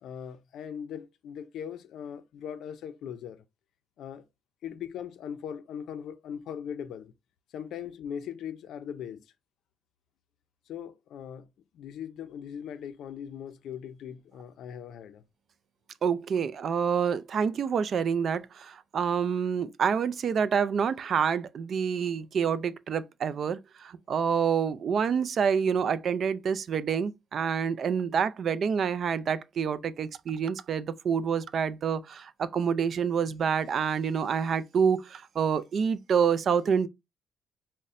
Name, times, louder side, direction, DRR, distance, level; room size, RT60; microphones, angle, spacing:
voice 1, 0.0-3.4 4.0-4.2 4.6-7.1 7.5-9.2 10.7-11.5 11.7-15.2, left 8 dB, 75° left, 0.4 m, -39 dB
voice 2, 16.0-36.9, right 7 dB, 55° right, 0.3 m, -27 dB
5.4 x 2.1 x 2.5 m
cardioid pair, 90°, 0 cm